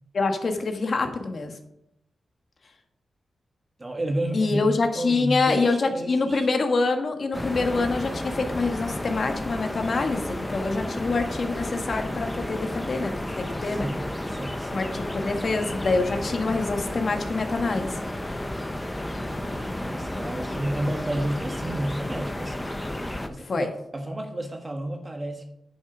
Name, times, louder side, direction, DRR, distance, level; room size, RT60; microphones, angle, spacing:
voice 1, 0.1-1.5 4.3-13.1 13.4-13.9 14.7-18.0 23.4-23.7, left 3 dB, 55° left, 5 dB, 1.5 m, -26 dB
voice 2, 3.8-6.5 13.6-14.9 19.1-22.7 23.3-25.5, right 1 dB, 30° right, 4 dB, 1.3 m, -31 dB
sound 1, 7.3-23.3, left 1 dB, 15° left, 0.9 m, -32 dB
9.9 x 6.0 x 5.0 m, 0.79 s
cardioid pair, 85°, 0 cm